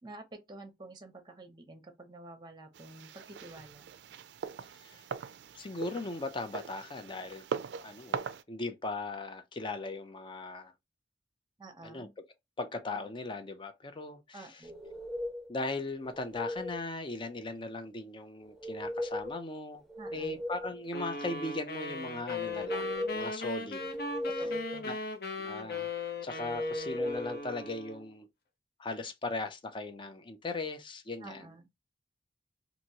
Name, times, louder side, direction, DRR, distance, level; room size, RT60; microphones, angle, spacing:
voice 1, 0.0-3.9 11.6-12.1 14.3-14.8 20.0-20.4 24.2-24.9 31.2-31.7, right 2 dB, 25° right, 0.8 m, -49 dB
sound 1, 2.7-8.4, right 6 dB, 70° right, 0.3 m, -41 dB
voice 2, 5.5-7.5 7.8-10.7 11.8-12.1 12.6-14.4 15.5-19.8 20.1-23.9 24.9-25.0 25.4-25.9 26.2-28.3 28.8-31.5, left 2 dB, 30° left, 0.5 m, -38 dB
sound 2, 14.6-15.5 16.0-16.8 18.4-19.4 19.8-20.9 22.3-23.3 23.8-24.8 26.4-27.4, left 1 dB, ahead, 1.0 m, -37 dB
sound 3, 20.9-28.1, left 3 dB, 60° left, 0.7 m, -38 dB
2.9 x 2.6 x 2.8 m
head